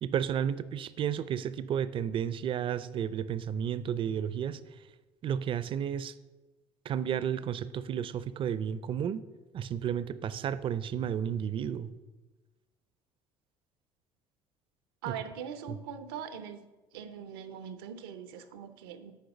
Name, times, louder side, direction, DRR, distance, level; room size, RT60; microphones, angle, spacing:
voice 1, 0.0-4.6 5.2-6.1 6.9-9.2 9.5-11.9 15.1-15.2 15.7-15.8, right 9 dB, 45° right, 15 dB, 0.5 m, -32 dB
voice 2, 15.0-16.6 16.9-19.1, right 7 dB, 90° right, 10 dB, 0.7 m, -41 dB
6.6 x 4.7 x 6.8 m, 1.2 s
supercardioid pair, 80°, 12 cm